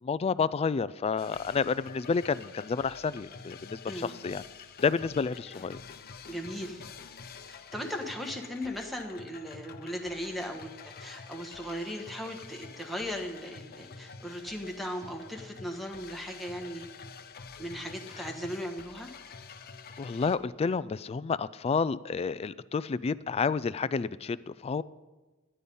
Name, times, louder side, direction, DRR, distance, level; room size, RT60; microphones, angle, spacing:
voice 1, 0.0-4.4 4.8-5.8 18.1-18.3 20.0-24.8, left 5 dB, 30° left, 17 dB, 0.3 m, -30 dB
sound 1, 1.2-20.4, left 5 dB, 45° left, 0.7 m, -48 dB
voice 2, 6.3-6.8 7.4-16.9 17.6-19.1, equal, ahead, 1 dB, 1.3 m, -38 dB
12.0 x 10.0 x 5.4 m, 1.2 s
head